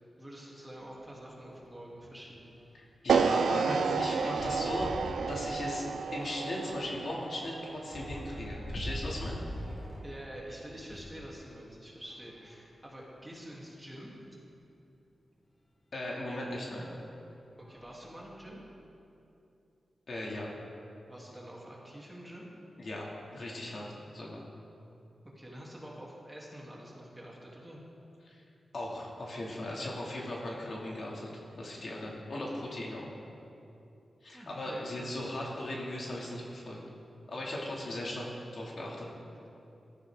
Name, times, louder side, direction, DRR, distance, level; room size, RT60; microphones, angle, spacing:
voice 1, 0.2-2.6 10.0-14.1 17.6-18.6 21.1-22.4 25.3-27.8 34.3-35.1, equal, 10° right, -5 dB, 3.2 m, -47 dB
sound 1, 1.0-1.1 1.3-1.5 1.8-11.3 12.0-13.3 14.0-14.1 14.4-14.5 16.1-16.2 16.9-17.2 17.6-18.8, equal, 25° left, 2.2 m, -45 dB
voice 2, 2.7-4.9 5.3-5.9 6.1-9.4 15.9-16.9 20.1-20.5 22.8-23.8 24.1-24.4 28.2-28.4 28.7-31.3 31.6-33.1 34.2-36.8 37.3-38.2 38.5-39.1, left 1 dB, 60° left, -3 dB, 2.6 m, -37 dB
sound 2, 3.1-9.3, right 5 dB, 90° right, 0.5 m, -31 dB
17.0 x 13.5 x 3.8 m, 2.7 s
wide cardioid pair, 90°, 0 cm